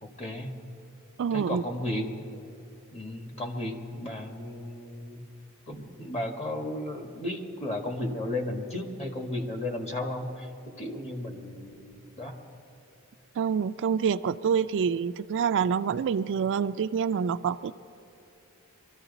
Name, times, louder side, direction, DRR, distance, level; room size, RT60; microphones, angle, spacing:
voice 1, 0.0-0.6 1.3-2.3 2.9-5.2 5.7-12.4, left 1 dB, 30° left, 3 dB, 1.5 m, -34 dB
voice 2, 1.2-1.6 13.4-17.7, right 6 dB, 55° right, 12 dB, 0.3 m, -27 dB
23.5 x 13.5 x 4.0 m, 2.8 s
head